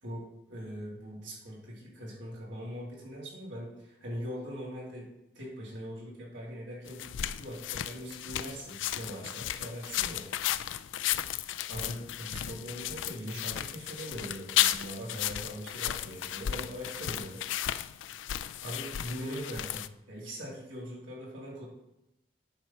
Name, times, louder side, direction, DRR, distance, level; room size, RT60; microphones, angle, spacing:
voice 1, 0.0-5.1 5.3-7.0 7.4-10.3 11.7-17.4 18.6-21.7, equal, 80° right, -5 dB, 3.3 m, -41 dB
sound 1, 6.9-19.9, left 12 dB, 85° left, 0.4 m, -34 dB
10.5 x 4.4 x 5.8 m, 0.89 s
head